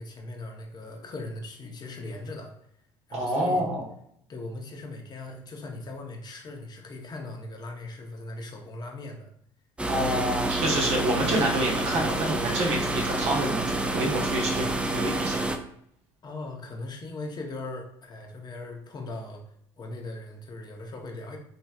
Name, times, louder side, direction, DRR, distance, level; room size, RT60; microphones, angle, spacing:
voice 1, 0.0-2.5 3.1-3.6 4.3-9.3 16.2-19.4 19.8-21.4, left 2 dB, 35° left, 2 dB, 0.8 m, -39 dB
voice 2, 3.1-3.9 9.9-15.4, right 1 dB, 65° right, -1 dB, 0.9 m, -27 dB
sound 1, 9.8-15.6, right 2 dB, 10° right, 0.4 m, -28 dB
3.1 x 2.8 x 2.3 m, 0.71 s
hypercardioid pair, 65°, 12 cm